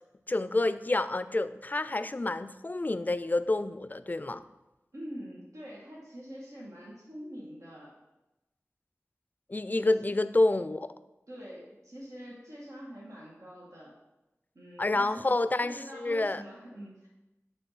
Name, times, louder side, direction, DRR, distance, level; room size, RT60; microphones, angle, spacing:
voice 1, 0.3-4.4 9.5-10.9 14.8-16.4, left 2 dB, 35° left, 13 dB, 0.3 m, -28 dB
voice 2, 4.9-7.9 11.3-14.0 14.5-17.1, equal, 85° right, -5 dB, 1.4 m, -45 dB
8.4 x 3.4 x 5.5 m, 0.99 s
wide cardioid pair, 50°, 5 cm